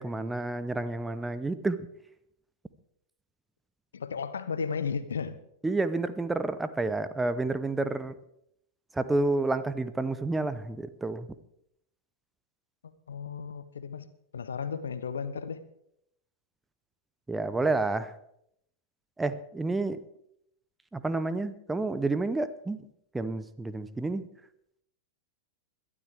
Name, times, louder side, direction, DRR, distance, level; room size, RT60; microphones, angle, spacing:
voice 1, 0.0-1.8 5.6-8.1 8.9-11.3 17.3-18.1 19.2-20.0 20.9-22.9 23.1-24.3, right 2 dB, 10° right, 13 dB, 0.8 m, -29 dB
voice 2, 3.9-5.4 13.1-14.1 14.3-15.6, left 6 dB, 70° left, 13 dB, 1.0 m, -34 dB
21.5 x 12.0 x 3.5 m, 0.74 s
figure-of-eight pair, 90°, 0 cm